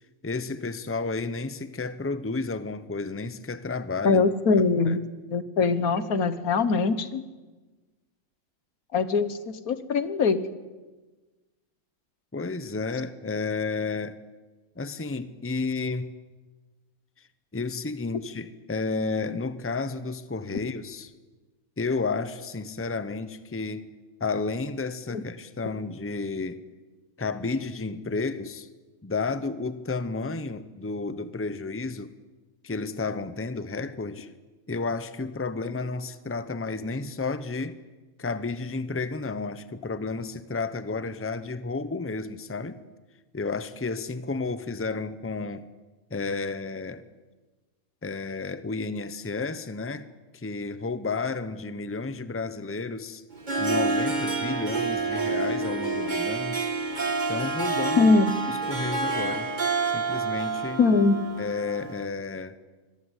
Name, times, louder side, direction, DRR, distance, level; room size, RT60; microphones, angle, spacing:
voice 1, 0.2-4.2 4.9-5.0 12.3-14.2 14.8-16.1 17.5-21.1 21.8-23.9 24.2-26.6 27.2-28.7 29.0-32.1 32.6-34.3 34.7-37.8 38.2-42.8 43.3-45.7 46.1-47.0 48.0-50.1 50.3-53.2 53.6-56.7 57.3-58.1 58.5-59.5 59.9-60.8 61.4-62.6, left 3 dB, 10° left, 0.8 m, -32 dB
voice 2, 4.0-5.0 5.3-7.2 8.9-10.4 25.1-25.2 58.0-58.3 60.8-61.2, left 4 dB, 85° left, 1.8 m, -22 dB
Harp, 53.3-62.0, right 3 dB, 30° right, 2.0 m, -28 dB
25.5 x 21.0 x 8.3 m
omnidirectional pair, 1.5 m